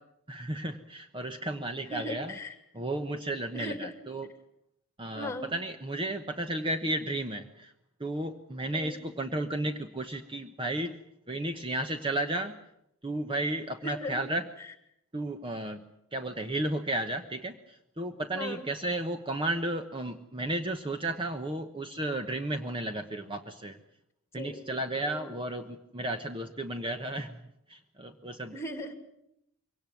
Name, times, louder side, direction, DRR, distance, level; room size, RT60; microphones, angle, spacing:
voice 1, 0.3-2.4 2.7-4.3 5.0-7.7 8.0-11.0 11.3-12.6 13.0-14.4 15.1-15.8 16.1-23.8 24.3-27.4 27.7-28.6, right 1 dB, 25° right, 7 dB, 1.1 m, -33 dB
voice 2, 1.8-2.5 3.5-3.9 5.1-5.5 8.7-9.0 13.8-14.2 18.3-18.7 24.3-24.6 25.1-25.3 28.5-28.9, left 1 dB, 10° left, 8 dB, 2.7 m, -38 dB
23.5 x 18.0 x 9.3 m, 0.77 s
head